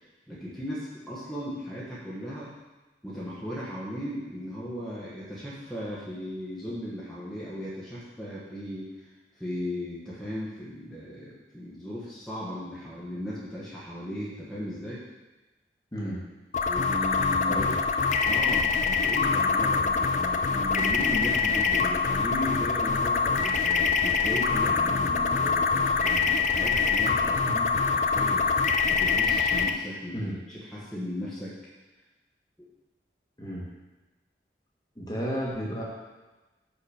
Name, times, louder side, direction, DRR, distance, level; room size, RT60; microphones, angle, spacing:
voice 1, 0.3-2.5 3.0-9.1 9.4-15.0 16.7-17.8 18.2-30.2 30.5-31.5 32.6-32.7, equal, 5° left, -9 dB, 1.2 m, -36 dB
sound 1, 16.5-29.7, left 5 dB, 40° left, 0.4 m, -24 dB
voice 2, 35.0-35.8, equal, 20° left, -5 dB, 1.3 m, -32 dB
5.8 x 5.6 x 5.0 m, 1.2 s
head